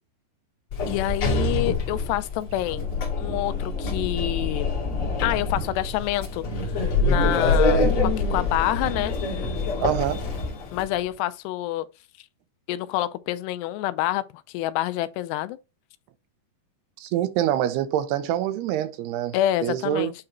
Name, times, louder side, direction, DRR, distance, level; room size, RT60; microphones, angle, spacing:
Sliding door, 0.7-10.9, left 3 dB, 45° left, 2.0 m, -25 dB
voice 1, 0.9-2.9 3.2-4.7 5.2-6.7 7.0-9.2 10.7-11.9 12.7-15.6 19.3-20.1, left 14 dB, 85° left, 2.7 m, -27 dB
voice 2, 9.8-10.2 17.0-19.3 19.6-20.1, right 11 dB, 80° right, 2.7 m, -25 dB
8.8 x 3.8 x 4.3 m
omnidirectional pair, 4.8 m